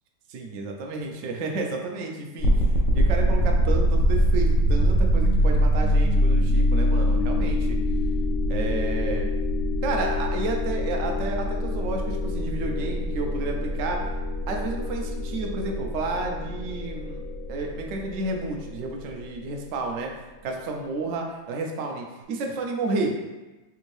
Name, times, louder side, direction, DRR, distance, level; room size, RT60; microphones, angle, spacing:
voice 1, 0.3-2.7 2.9-7.8 8.5-9.3 9.8-14.0 14.5-17.2 17.5-20.1 20.4-23.1, right 3 dB, 90° right, 1 dB, 0.6 m, -31 dB
sound 1, 2.4-19.3, equal, 80° left, 1.2 m, -24 dB
3.5 x 2.5 x 3.1 m, 1.1 s
omnidirectional pair, 1.8 m